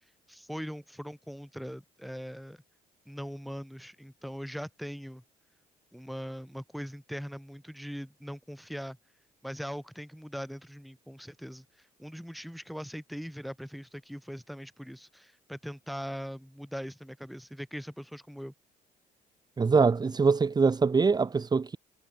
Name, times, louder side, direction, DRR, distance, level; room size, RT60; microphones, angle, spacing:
voice 1, 0.3-2.6 3.1-5.2 5.9-9.0 9.4-18.5, equal, ahead, 7.6 m, -41 dB
voice 2, 19.6-21.8, right 4 dB, 25° right, 1.8 m, -23 dB
cardioid pair, 110°, 17 cm